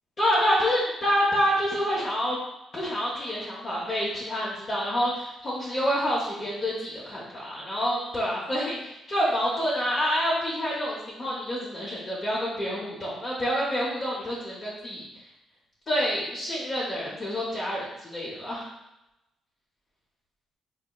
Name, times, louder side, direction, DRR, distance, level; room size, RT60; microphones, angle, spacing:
voice 1, 0.2-2.4 2.7-15.1 15.9-18.7, equal, 35° left, -7 dB, 0.8 m, -27 dB
3.6 x 2.7 x 2.3 m, 0.90 s
cardioid pair, 90°, 0 cm